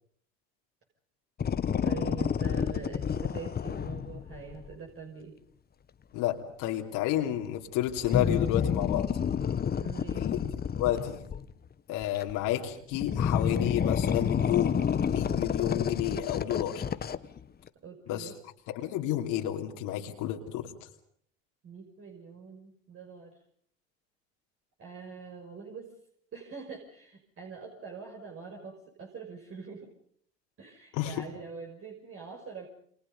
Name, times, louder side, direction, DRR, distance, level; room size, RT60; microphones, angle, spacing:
sound 1, 1.4-4.7 7.9-11.5 12.0-12.5 12.9-17.4 17.7-17.8, left 7 dB, 25° left, 1.2 m, -29 dB
voice 1, 1.8-5.3 9.8-10.3 17.8-18.4 21.6-23.4 24.8-25.9 26.3-29.9 30.6-32.7, right 5 dB, 40° right, 1 dB, 5.9 m, -44 dB
voice 2, 6.1-9.1 10.1-10.4 10.7-11.2 11.9-14.8 15.1-16.8 18.1-18.3 18.7-20.9 30.9-31.2, left 12 dB, 65° left, 1 dB, 3.1 m, -31 dB
29.0 x 27.0 x 5.5 m, 0.62 s
hypercardioid pair, 90°, 35 cm